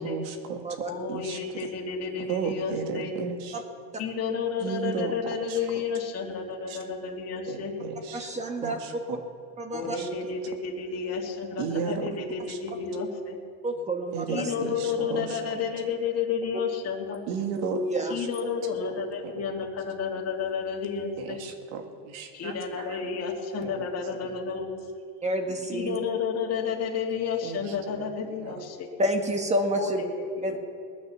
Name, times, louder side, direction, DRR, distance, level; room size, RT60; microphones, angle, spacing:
voice 1, 0.0-1.7 2.2-3.6 4.6-5.1 6.7-6.8 7.5-9.2 9.8-10.1 11.6-12.1 12.5-12.6 14.1-15.6 17.3-17.8 18.2-18.3 19.2-19.5 21.2-23.0 23.6-24.3 27.4-28.1 28.4-28.5, right 6 dB, 80° right, 5 dB, 2.0 m, -35 dB
voice 2, 0.9-3.1 4.0-7.7 9.7-13.4 14.3-17.2 18.1-21.4 22.3-24.8 25.7-28.9 29.8-30.6, left 6 dB, 35° left, -1 dB, 2.1 m, -31 dB
voice 3, 8.1-8.8 9.6-9.9 13.6-14.4 17.6-18.1 25.2-26.0 29.0-30.0 30.4-30.6, right 1 dB, 15° right, 5 dB, 1.4 m, -28 dB
19.5 x 9.2 x 7.0 m, 2.4 s
cardioid pair, 145°, 43 cm